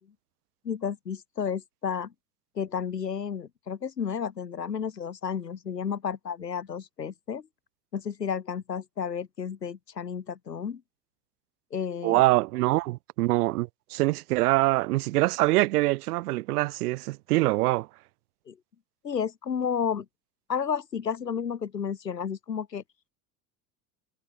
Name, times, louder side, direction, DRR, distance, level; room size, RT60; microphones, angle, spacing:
voice 1, 0.6-2.1 2.5-7.5 7.9-10.8 11.7-12.2 18.5-18.6 19.0-20.1 20.5-22.8, left 7 dB, 85° left, 4.5 m, -32 dB
voice 2, 12.0-17.9, right 19 dB, 65° right, 3.5 m, -24 dB
hypercardioid pair, 75°, 48 cm